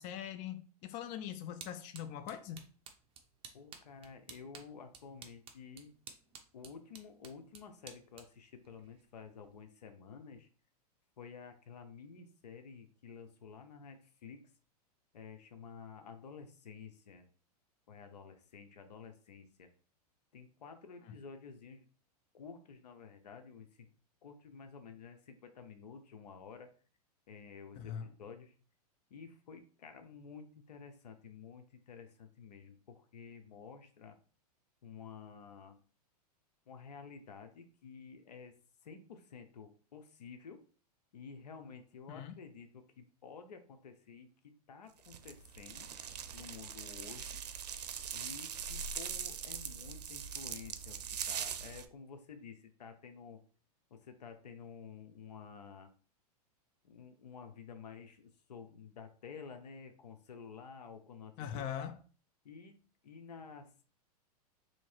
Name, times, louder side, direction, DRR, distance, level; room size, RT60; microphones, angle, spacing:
voice 1, 0.0-2.6 21.0-21.1 27.8-28.0 42.1-42.4 61.4-62.0, left 9 dB, 35° left, 0.4 m, -42 dB
sound 1, 0.9-9.6, right 6 dB, 25° right, 0.8 m, -56 dB
voice 2, 3.5-5.9 6.5-10.5 11.2-14.4 15.1-17.2 17.9-19.7 20.3-21.9 22.3-23.9 24.2-26.7 27.3-28.5 29.1-34.2 34.8-35.8 36.7-38.5 38.8-40.6 41.1-44.3 44.7-45.9 46.3-47.4 48.1-51.0 51.3-53.4 53.9-55.9 56.8-61.7 62.4-62.8 63.0-63.8, left 6 dB, 80° left, 0.8 m, -51 dB
sound 2, 45.0-51.9, right 7 dB, 80° right, 0.6 m, -42 dB
3.1 x 2.8 x 4.4 m
hypercardioid pair, 115°, 20 cm